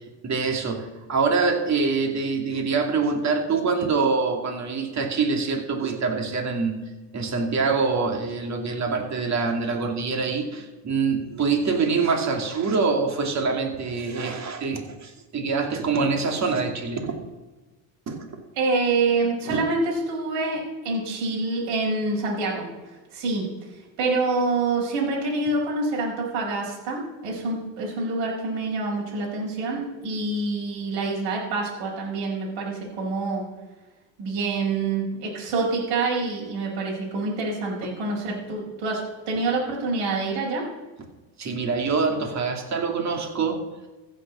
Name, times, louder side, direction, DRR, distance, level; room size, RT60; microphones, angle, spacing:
voice 1, 0.2-17.1 18.1-18.2 19.5-19.6 41.4-43.6, right 4 dB, 35° right, 3 dB, 2.6 m, -25 dB
voice 2, 18.6-22.7 23.1-23.5 24.0-33.5 34.2-40.7, right 3 dB, 65° right, -3 dB, 5.1 m, -26 dB
15.0 x 6.8 x 6.2 m, 1.2 s
supercardioid pair, 105°, 49 cm